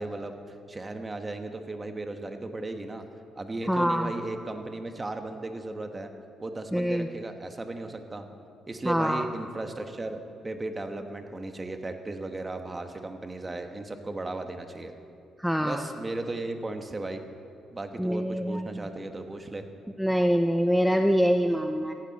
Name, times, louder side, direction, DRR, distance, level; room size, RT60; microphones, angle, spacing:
voice 1, 0.0-3.0 3.4-6.1 6.4-8.3 8.7-14.9 15.6-17.2 17.7-19.6, right 2 dB, 25° right, 6 dB, 1.4 m, -36 dB
voice 2, 3.7-4.1 6.7-7.1 8.8-9.2 15.4-15.8 18.0-18.7 20.0-21.9, equal, ahead, 5 dB, 0.6 m, -24 dB
18.5 x 15.0 x 4.2 m, 2.5 s
cardioid pair, 90°, 0 cm